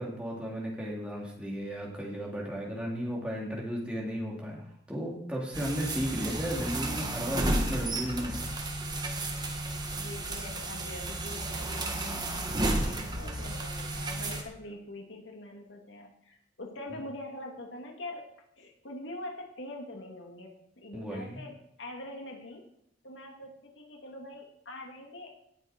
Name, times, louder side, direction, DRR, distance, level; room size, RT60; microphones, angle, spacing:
voice 1, 0.0-8.4 20.9-21.4, equal, 5° right, -3 dB, 3.3 m, -34 dB
sound 1, 5.5-14.4, right 1 dB, 25° right, 1.6 m, -33 dB
voice 2, 9.9-18.3 18.6-22.6 23.0-25.3, left 1 dB, 90° left, 1 dB, 2.7 m, -44 dB
18.0 x 7.5 x 4.6 m, 0.74 s
head